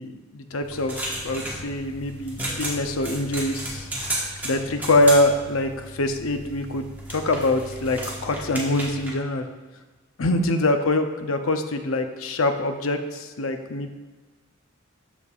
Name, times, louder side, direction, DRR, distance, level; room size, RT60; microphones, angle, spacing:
voice 1, 0.0-3.9 4.4-9.5 10.2-13.9, left 2 dB, 80° left, 7 dB, 0.7 m, -24 dB
sound 1, 0.6-9.1, right 1 dB, 10° right, 1.4 m, -34 dB
13.0 x 5.2 x 2.5 m, 1.3 s
head